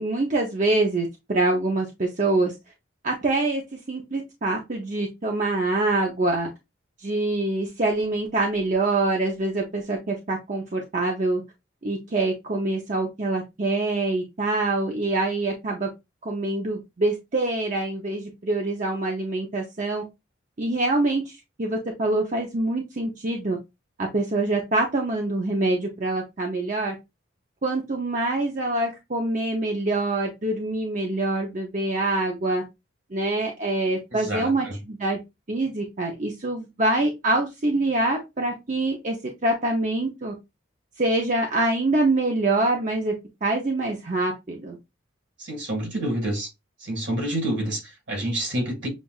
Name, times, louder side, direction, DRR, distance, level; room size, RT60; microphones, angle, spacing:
voice 1, 0.0-2.5 3.0-3.6 3.9-6.5 7.0-11.4 11.8-15.9 16.2-20.0 20.6-23.6 24.0-26.9 27.6-32.6 33.1-35.2 35.5-39.2 39.4-40.3 41.0-43.1 43.4-44.8, right 2 dB, 40° right, 0.6 m, -25 dB
voice 2, 34.1-34.8 45.4-46.5 46.8-48.9, right 1 dB, 65° right, 1.9 m, -28 dB
7.1 x 2.4 x 2.3 m
head